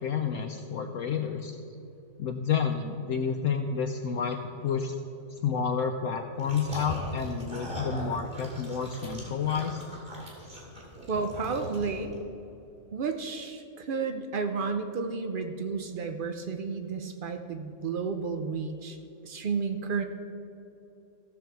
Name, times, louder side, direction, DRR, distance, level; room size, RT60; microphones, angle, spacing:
voice 1, 0.0-1.6 2.2-4.9 5.4-9.8, left 6 dB, 65° left, 5 dB, 0.8 m, -30 dB
sound 1, 6.4-12.1, equal, 35° right, 2.9 m, -40 dB
voice 2, 11.1-12.2 12.9-19.0 19.2-20.0, right 5 dB, 85° right, 6 dB, 0.4 m, -32 dB
15.0 x 6.9 x 4.5 m, 2.9 s
omnidirectional pair, 1.7 m